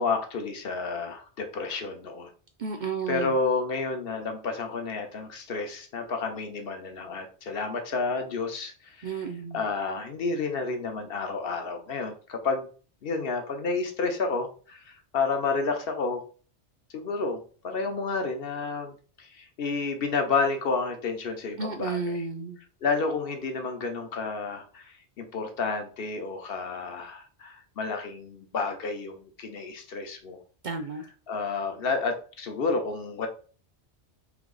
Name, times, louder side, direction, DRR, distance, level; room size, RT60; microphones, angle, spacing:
voice 1, 0.0-2.3 3.1-9.3 9.5-12.7 13.0-16.2 16.9-22.3 22.8-30.4 31.3-33.3, left 4 dB, 60° left, 5 dB, 0.9 m, -30 dB
voice 2, 2.6-3.3 9.0-9.6 21.6-22.6 30.6-31.0, right 4 dB, 55° right, 5 dB, 0.5 m, -32 dB
3.4 x 3.0 x 3.7 m, 0.40 s
omnidirectional pair, 1.2 m